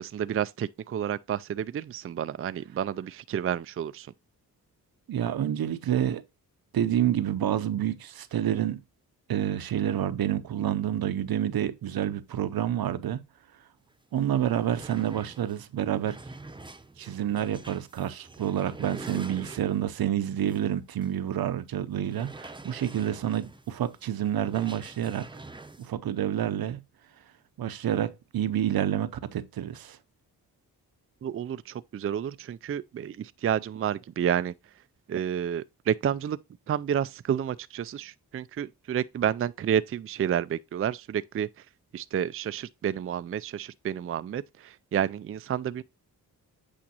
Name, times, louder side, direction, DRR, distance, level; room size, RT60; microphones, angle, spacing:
voice 1, 0.0-4.1 31.2-34.5 35.1-36.4 36.7-41.7 41.9-45.8, right 9 dB, 35° right, 0.4 m, -30 dB
voice 2, 5.1-6.2 6.7-8.8 9.3-13.2 14.1-16.2 17.0-25.3 25.8-26.8 27.6-30.0, right 10 dB, 70° right, 0.8 m, -28 dB
sound 1, 13.9-14.0 14.3-20.0 20.5-20.6 21.0-21.1 22.0-25.9, right 2 dB, 15° right, 0.8 m, -45 dB
8.6 x 5.1 x 2.9 m
cardioid pair, 75°, 37 cm